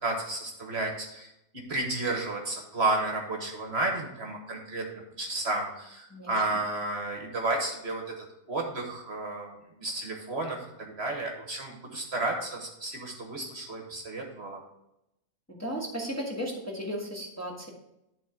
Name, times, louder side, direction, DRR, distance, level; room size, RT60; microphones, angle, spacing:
voice 1, 0.0-14.6, right 2 dB, 50° right, 1 dB, 1.4 m, -32 dB
voice 2, 15.5-17.7, equal, 10° left, -2 dB, 1.4 m, -35 dB
11.0 x 3.8 x 5.0 m, 0.86 s
omnidirectional pair, 1.5 m